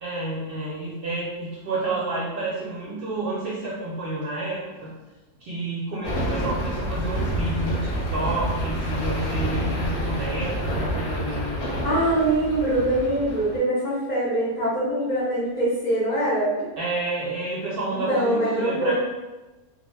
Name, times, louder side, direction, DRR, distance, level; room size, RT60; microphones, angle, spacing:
voice 1, 0.0-4.9 5.4-12.0 16.8-19.0, right 2 dB, 60° right, -5 dB, 0.6 m, -30 dB
sound 1, 6.0-13.6, right 1 dB, 70° left, 0.9 m, -28 dB
voice 2, 11.8-16.5 18.1-19.0, right 1 dB, 45° left, -9 dB, 0.6 m, -23 dB
2.3 x 2.1 x 3.1 m, 1.1 s
omnidirectional pair, 1.3 m